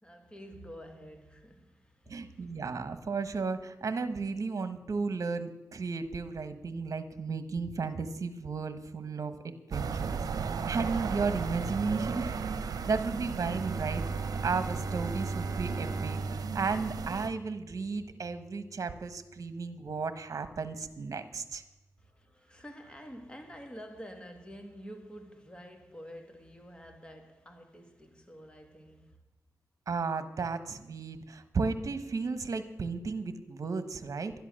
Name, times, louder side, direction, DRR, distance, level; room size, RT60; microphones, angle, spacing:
voice 1, 0.0-2.6 22.0-29.2, equal, 15° left, 2.2 m, -48 dB
voice 2, 2.1-14.0 14.4-21.6 29.9-34.3, right 4 dB, 60° right, 1.2 m, -34 dB
sound 1, 9.7-17.3, right 5 dB, 75° right, 0.8 m, -35 dB
Bowed string instrument, 13.4-19.1, right 3 dB, 40° right, 0.4 m, -39 dB
12.0 x 11.0 x 6.4 m
cardioid pair, 60°, 6 cm